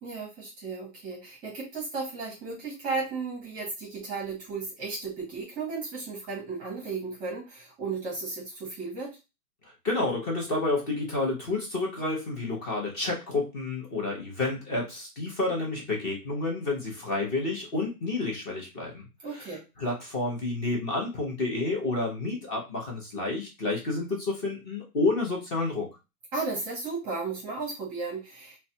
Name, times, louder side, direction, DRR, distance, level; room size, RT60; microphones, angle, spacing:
voice 1, 0.0-9.2 19.2-19.6 26.3-28.6, right 4 dB, 20° right, -1 dB, 0.7 m, -34 dB
voice 2, 9.6-19.5 19.8-25.9, left 2 dB, 25° left, -1 dB, 0.8 m, -30 dB
3.1 x 2.2 x 2.7 m, 0.26 s
hypercardioid pair, 145°, 45 cm